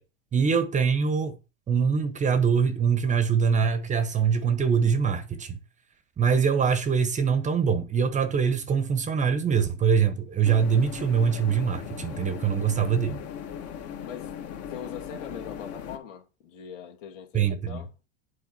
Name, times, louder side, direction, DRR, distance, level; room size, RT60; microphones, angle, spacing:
voice 1, 0.3-1.4 1.7-5.6 6.2-13.2 17.3-17.8, right 6 dB, 20° right, 1.0 m, -23 dB
sound 1, 10.4-16.0, left 8 dB, 40° left, 1.9 m, -38 dB
voice 2, 14.0-14.4 14.7-18.1, left 7 dB, 80° left, 2.7 m, -42 dB
8.4 x 4.9 x 6.2 m
supercardioid pair, 125°, 37 cm